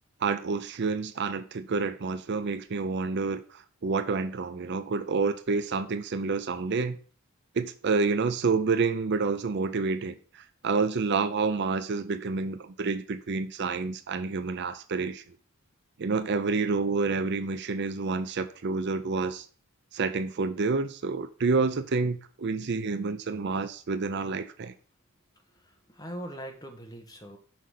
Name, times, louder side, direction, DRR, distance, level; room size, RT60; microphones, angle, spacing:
voice 1, 0.2-7.0 7.5-15.2 16.0-19.5 19.9-24.7, right 4 dB, 50° right, 0.5 m, -28 dB
voice 2, 25.5-27.4, equal, 15° left, 1.4 m, -42 dB
5.9 x 5.3 x 6.5 m
head